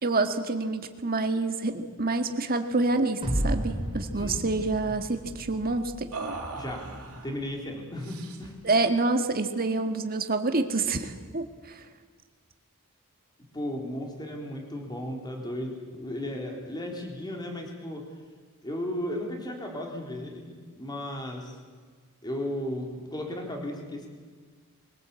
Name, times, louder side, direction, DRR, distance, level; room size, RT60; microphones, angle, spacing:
voice 1, 0.0-6.1 8.6-11.8, right 3 dB, 45° right, 7 dB, 1.8 m, -27 dB
sound 1, 2.8-3.0 3.2-3.4 3.8-4.5 6.1-7.4 8.0-8.6, right 3 dB, 70° right, 3.5 m, -40 dB
sound 2, 3.2-6.5, equal, 25° right, 4.8 m, -32 dB
voice 2, 4.1-4.5 6.5-6.8 7.2-8.5 13.5-18.0 18.6-20.5 20.7-21.6 22.2-24.1, left 1 dB, 20° left, 1 dB, 3.8 m, -35 dB
23.5 x 17.5 x 8.4 m, 1.5 s
head